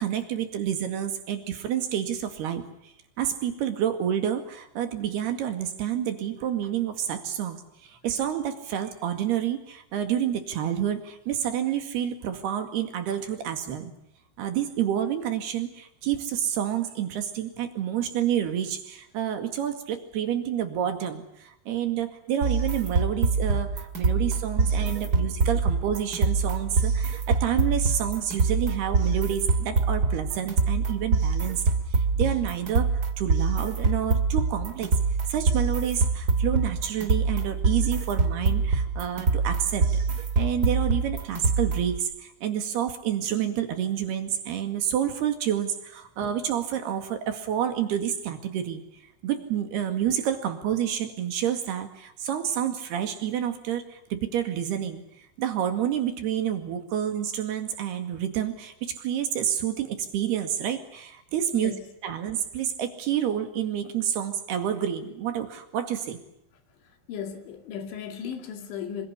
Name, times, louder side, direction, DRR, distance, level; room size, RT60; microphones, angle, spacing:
voice 1, 0.0-13.9 14.4-31.6 32.2-32.9 33.2-34.9 35.3-39.9 40.4-48.8 49.2-55.0 55.4-61.7 62.0-66.2, right 9 dB, 65° right, 3.9 m, -29 dB
sound 1, 22.4-42.0, right 4 dB, 30° right, 2.0 m, -25 dB
voice 2, 24.6-25.2 61.5-61.8 67.1-69.1, left 7 dB, 75° left, 4.9 m, -37 dB
26.5 x 24.5 x 7.1 m
omnidirectional pair, 5.4 m